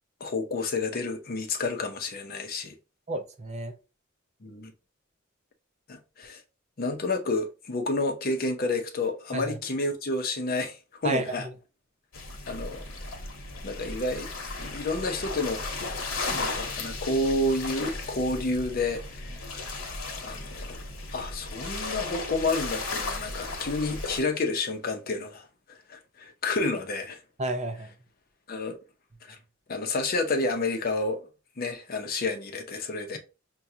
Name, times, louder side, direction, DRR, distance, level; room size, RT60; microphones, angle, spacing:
voice 1, 0.2-2.7 4.4-4.7 5.9-6.4 6.8-11.5 12.5-12.8 13.6-14.3 14.6-15.7 16.3-19.3 20.2-20.8 21.1-27.2 28.5-28.8 29.2-29.4 29.7-31.3 31.6-33.2, left 2 dB, 45° left, 0.6 m, -30 dB
voice 2, 3.1-3.7 9.3-9.5 11.0-11.5 27.4-27.9, right 2 dB, 35° right, 0.6 m, -31 dB
sound 1, 12.1-24.2, left 3 dB, 85° left, 0.9 m, -35 dB
5.8 x 2.2 x 2.7 m
head